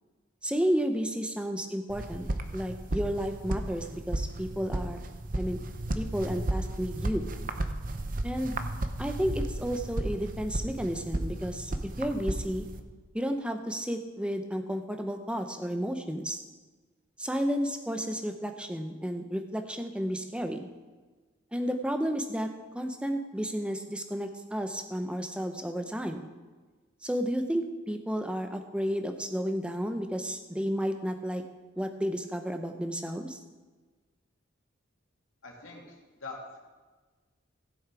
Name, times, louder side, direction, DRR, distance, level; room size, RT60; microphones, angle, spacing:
voice 1, 0.4-2.3 2.5-5.0 5.3-5.6 6.0-7.3 8.2-8.6 9.0-11.7 12.0-12.6 13.1-16.4 17.2-20.7 21.5-22.5 22.7-26.2 27.0-31.4 31.8-33.4, equal, 5° right, 5 dB, 0.7 m, -32 dB
Footsteps on Grass.R, 1.9-12.8, right 1 dB, 40° right, 0.8 m, -34 dB
voice 2, 35.4-36.6, left 3 dB, 85° left, -1 dB, 2.6 m, -44 dB
16.0 x 7.1 x 4.8 m, 1.3 s
head